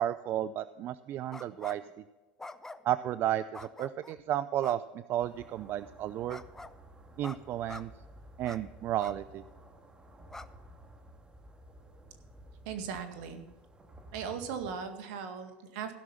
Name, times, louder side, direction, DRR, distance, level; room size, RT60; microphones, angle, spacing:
voice 1, 0.0-2.0 2.8-4.8 5.1-6.4 7.2-7.9 8.4-9.4, right 12 dB, 45° right, 14 dB, 0.4 m, -32 dB
sound 1, 1.3-1.9 2.4-3.0 3.5-4.2 4.6-4.8 6.3-6.8 7.2-7.4 7.6-7.8 8.4-8.6 9.0-9.2 9.6-9.7 10.3-10.5, left 2 dB, 10° left, 0.6 m, -45 dB
sound 2, 5.2-14.9, right 1 dB, 15° right, 1.8 m, -54 dB
voice 2, 12.7-13.4 14.1-15.9, right 6 dB, 65° right, 7 dB, 1.9 m, -38 dB
16.0 x 6.2 x 5.7 m, 1.2 s
hypercardioid pair, 95°, 5 cm